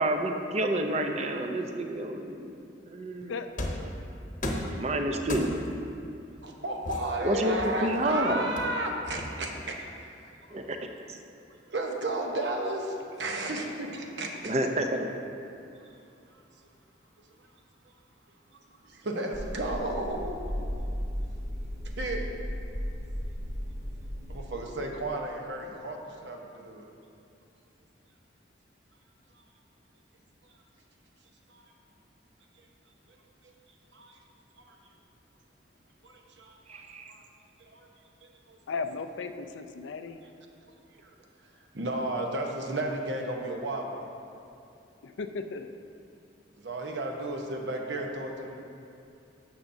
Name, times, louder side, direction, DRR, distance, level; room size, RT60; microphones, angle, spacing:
voice 1, 0.0-2.5 2.9-3.3 4.8-5.6 7.2-8.5 10.5-10.8 11.1-11.2 14.4-15.2 36.7-37.1, right 1 dB, 35° right, 4 dB, 0.5 m, -29 dB
sound 1, 3.6-3.9 4.4-4.8 5.3-5.8 6.9-8.0 8.6-9.6, left 1 dB, 45° left, 0.9 m, -35 dB
voice 2, 6.4-10.5 11.7-14.5 17.9-18.0 18.9-20.9 22.0-22.2 24.3-26.8 31.5-31.6 33.4-33.5 33.9-34.2 34.6-34.7 36.0-36.8 37.1-37.2 37.7-37.9 38.5-38.6 41.0-41.1 41.7-44.0 46.6-48.6, right 1 dB, 75° right, 1 dB, 0.9 m, -33 dB
sound 2, 19.3-24.4, equal, 15° right, 1.0 m, -35 dB
voice 3, 38.7-40.2 45.0-45.7, left 4 dB, 85° left, 9 dB, 0.4 m, -35 dB
12.0 x 7.1 x 2.7 m, 2.6 s
head